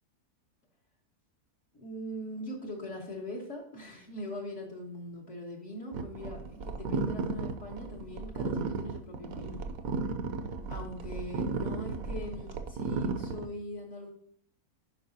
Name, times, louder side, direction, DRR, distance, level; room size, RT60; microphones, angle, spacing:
voice 1, 1.7-9.6 10.7-14.1, left 1 dB, 55° left, -2 dB, 1.7 m, -41 dB
sound 1, 5.9-13.5, right 4 dB, 70° right, 1.1 m, -34 dB
10.5 x 5.0 x 2.7 m, 0.63 s
omnidirectional pair, 1.6 m